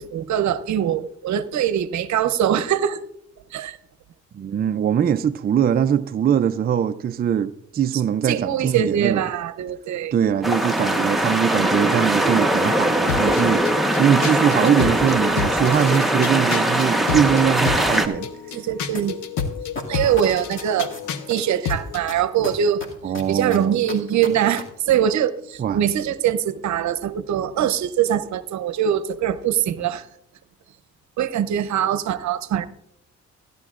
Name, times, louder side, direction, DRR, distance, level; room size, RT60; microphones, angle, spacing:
voice 1, 0.0-3.0 3.5-3.8 8.2-10.1 18.5-19.2 19.9-20.9 21.3-22.8 23.3-30.1 31.2-32.7, right 9 dB, 70° right, 0.8 m, -22 dB
voice 2, 4.3-9.2 10.1-18.3 23.0-23.8 25.6-25.8, right 8 dB, 30° right, 0.4 m, -22 dB
sound 1, 10.4-18.1, right 1 dB, ahead, 1.1 m, -21 dB
sound 2, 13.1-22.1, left 6 dB, 80° left, 1.0 m, -30 dB
sound 3, 18.9-19.0 19.4-21.3 21.7-24.6 24.9-25.0, left 3 dB, 40° left, 2.3 m, -35 dB
16.5 x 11.5 x 2.5 m
cardioid pair, 90°, 30 cm